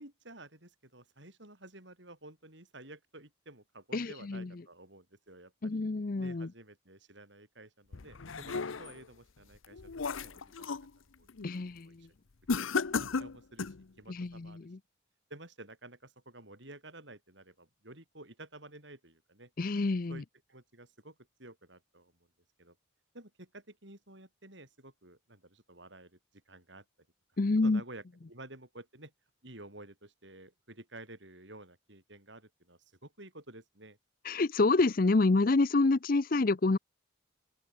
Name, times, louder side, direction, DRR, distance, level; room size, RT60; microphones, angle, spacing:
voice 1, 0.0-5.8 6.2-10.8 11.2-11.3 11.8-12.1 12.7-12.8 13.0-14.7 15.3-19.5 20.1-20.2 20.5-22.1 22.6-22.8 23.1-26.2 26.5-26.8 27.6-29.1 29.4-34.0, right 2 dB, 65° right, 7.4 m, -52 dB
voice 2, 3.9-4.5 5.6-6.5 11.4-12.1 14.1-14.8 19.6-20.2 27.4-27.8 34.2-36.8, left 3 dB, 45° left, 0.6 m, -28 dB
sound 1, 7.9-9.1 9.5-10.9 11.3-11.6 12.5-13.8, left 4 dB, 90° left, 0.8 m, -35 dB
open air
head